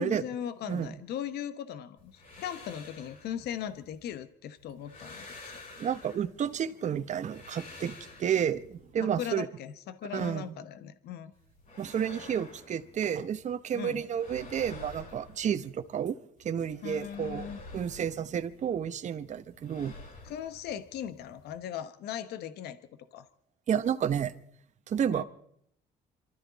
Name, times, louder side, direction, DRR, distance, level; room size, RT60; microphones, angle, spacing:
voice 1, 0.0-5.5 9.0-11.3 13.7-14.0 16.8-17.6 20.2-22.8 23.1-23.3 25.1-25.2, left 9 dB, 75° left, 1.0 m, -38 dB
sound 1, 2.0-4.2 4.6-6.6 7.0-8.9 11.3-13.5 13.8-16.0 16.4-18.9 19.2-21.6, left 2 dB, 50° left, 7.2 m, -50 dB
voice 2, 5.8-9.5 10.1-10.5 11.8-17.5 17.7-19.9 23.7-24.3 24.9-25.2, right 8 dB, 45° right, 1.0 m, -31 dB
27.0 x 13.0 x 4.1 m
cardioid pair, 110°, 17 cm